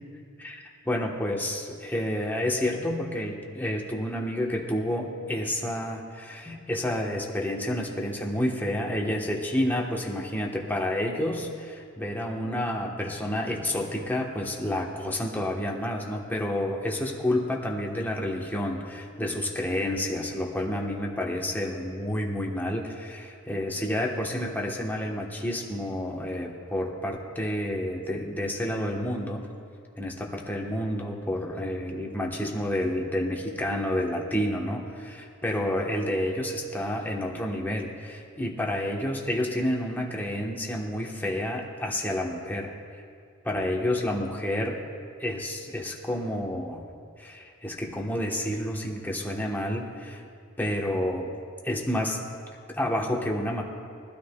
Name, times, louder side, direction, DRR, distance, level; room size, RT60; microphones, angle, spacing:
voice 1, 0.4-29.5 30.0-42.7 43.4-44.8 45.2-46.8 47.2-50.2 50.6-51.3 51.6-52.2 52.7-53.6, left 1 dB, 10° left, -1 dB, 1.1 m, -29 dB
22.0 x 12.5 x 2.3 m, 2.3 s
head